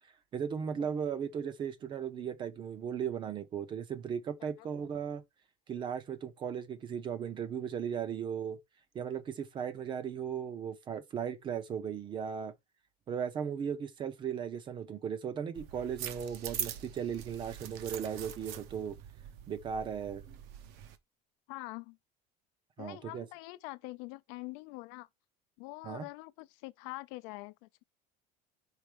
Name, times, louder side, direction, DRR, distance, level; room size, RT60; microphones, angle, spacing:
voice 1, 0.3-5.2 5.7-8.6 8.9-12.5 13.1-19.0 19.5-20.2 22.8-23.3 25.8-26.1, right 7 dB, 25° right, 0.6 m, -37 dB
sound 1, 15.6-21.0, right 10 dB, 60° right, 0.8 m, -43 dB
voice 2, 21.5-22.0 22.8-25.1 25.6-27.8, left 21 dB, 70° left, 0.5 m, -44 dB
4.7 x 4.0 x 5.0 m
cardioid pair, 175°, 19 cm